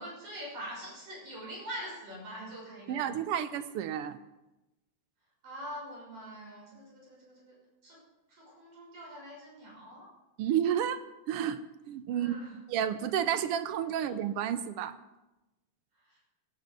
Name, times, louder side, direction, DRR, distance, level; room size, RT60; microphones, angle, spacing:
voice 1, 0.0-3.1 5.4-7.6 7.8-8.0 8.4-10.1 12.1-12.6, equal, 50° right, -3 dB, 7.3 m, -44 dB
voice 2, 2.9-4.2 10.4-11.6 11.9-12.4 12.7-15.0, right 9 dB, 85° right, 11 dB, 1.2 m, -31 dB
17.5 x 11.0 x 5.3 m, 1.0 s
omnidirectional pair, 3.3 m